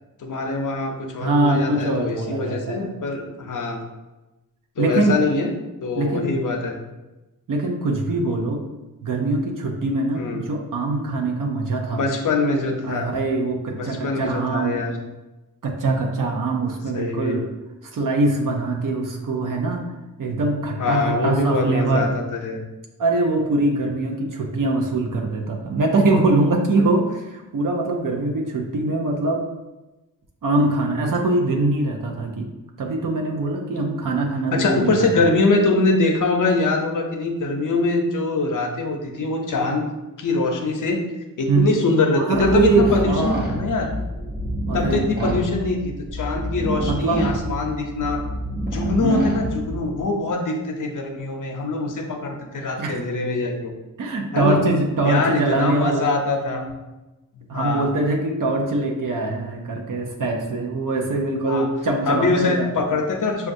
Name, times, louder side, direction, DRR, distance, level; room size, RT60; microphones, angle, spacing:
voice 1, 0.2-3.8 4.8-5.5 5.8-6.8 10.1-10.4 11.9-13.1 13.7-15.0 16.9-17.4 20.8-22.6 34.5-39.9 40.2-41.0 41.4-43.9 44.7-48.2 48.7-53.7 54.3-54.6 55.0-56.6 57.3-57.9 61.5-61.7 62.1-63.5, left 3 dB, 60° left, 3 dB, 0.6 m, -23 dB
voice 2, 1.2-2.9 4.8-5.2 6.0-6.3 7.5-8.6 9.0-12.0 12.8-14.8 15.6-17.5 17.9-19.8 20.2-22.1 23.0-29.4 30.4-32.5 32.8-35.1 41.5-41.7 42.2-43.5 44.7-45.4 46.8-47.2 49.0-49.3 52.8-53.0 54.0-56.0 56.5-56.7 57.5-62.7, right 2 dB, 65° right, 1 dB, 0.6 m, -22 dB
sound 1, 42.3-50.0, right 1 dB, 25° right, 0.7 m, -28 dB
6.1 x 2.3 x 2.6 m, 1.1 s
wide cardioid pair, 145°, 35 cm